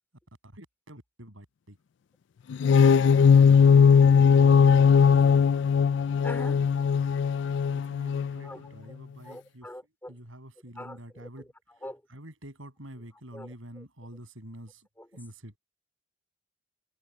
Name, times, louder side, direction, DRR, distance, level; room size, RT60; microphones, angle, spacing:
voice 1, 0.4-1.8 3.3-3.8 4.3-4.9 7.6-9.7 10.1-11.5 12.1-14.9 15.1-15.6, right 1 dB, 85° right, 7.3 m, -47 dB
sound 1, 2.5-8.5, left 6 dB, 60° left, 0.3 m, -19 dB
voice 2, 6.2-6.7 8.4-8.6 8.9-9.0 9.2-10.2 10.8-11.3 11.8-12.0 13.3-13.8 15.0-15.1, left 1 dB, 10° left, 3.9 m, -43 dB
head